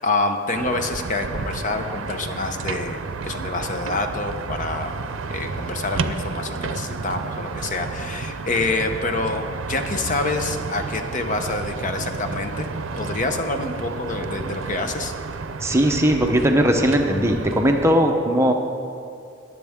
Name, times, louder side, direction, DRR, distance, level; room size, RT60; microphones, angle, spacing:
voice 1, 0.0-4.9 5.3-12.7 13.0-15.1, left 3 dB, 40° left, 6 dB, 0.7 m, -27 dB
sound 1, 0.5-17.9, right 4 dB, 90° right, 0.5 m, -31 dB
voice 2, 15.6-18.5, equal, 15° right, 3 dB, 0.7 m, -19 dB
20.5 x 7.5 x 3.6 m, 2.4 s
head